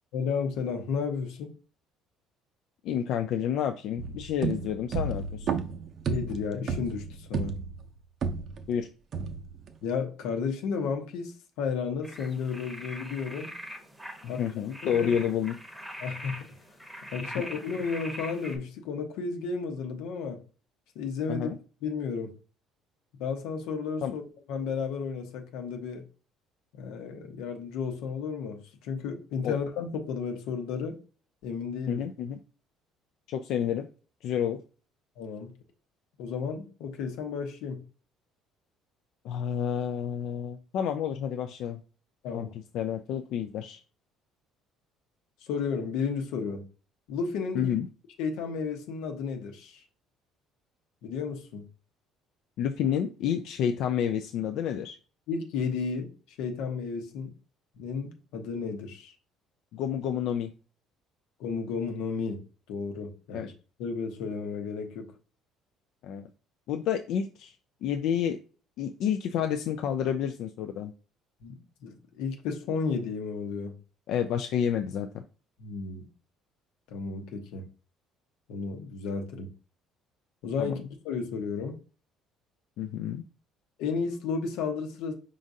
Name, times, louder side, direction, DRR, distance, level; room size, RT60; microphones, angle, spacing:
voice 1, 0.1-1.5 6.0-7.6 9.8-13.5 14.3-14.4 14.8-15.1 16.0-16.4 17.1-20.4 20.9-21.5 21.8-22.3 23.2-24.2 24.5-26.0 26.7-31.0 31.4-32.1 35.2-35.5 36.2-37.8 42.2-42.5 45.4-46.7 47.1-47.8 48.2-49.8 51.0-51.6 55.3-56.1 56.4-57.3 57.8-59.1 61.4-62.4 62.7-63.5 63.8-65.1 71.4-73.8 75.6-76.0 76.9-77.7 78.5-79.5 80.4-81.8 83.8-85.1, left 5 dB, 85° left, 1.0 m, -33 dB
voice 2, 2.8-5.6 8.7-8.9 14.2-15.5 17.3-17.4 21.3-21.6 24.0-24.1 29.4-29.6 31.9-32.4 33.3-33.9 34.2-34.6 39.2-41.8 42.3-42.5 42.7-43.8 47.5-47.9 52.6-55.0 59.7-60.5 63.3-63.5 66.0-66.3 66.7-67.6 67.8-68.4 68.8-70.9 74.1-75.2 80.6-80.7 82.8-83.2, left 9 dB, 60° left, 0.4 m, -29 dB
sound 1, 4.0-8.7 9.1-9.7, right 5 dB, 40° right, 0.6 m, -33 dB
sound 2, 12.0-18.6, equal, 5° right, 0.9 m, -42 dB
5.1 x 3.7 x 2.7 m
cardioid pair, 155°, 0 cm